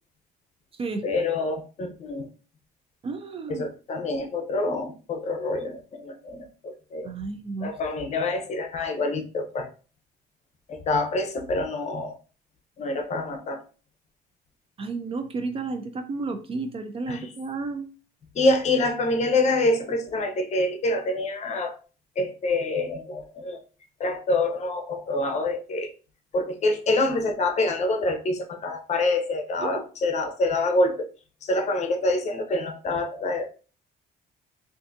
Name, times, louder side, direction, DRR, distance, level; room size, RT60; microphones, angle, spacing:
voice 1, 1.0-2.3 3.5-7.1 7.6-9.7 10.7-12.2 12.8-13.6 17.1-17.3 18.3-21.8 22.2-23.6 24.0-25.9 26.3-31.1 31.4-33.5, left 2 dB, 40° left, 5 dB, 0.7 m, -26 dB
voice 2, 3.0-3.7 7.0-7.7 14.8-17.9 29.6-29.8, right 3 dB, 35° right, 8 dB, 0.4 m, -32 dB
3.5 x 2.5 x 2.5 m, 0.36 s
cardioid pair, 110°, 17 cm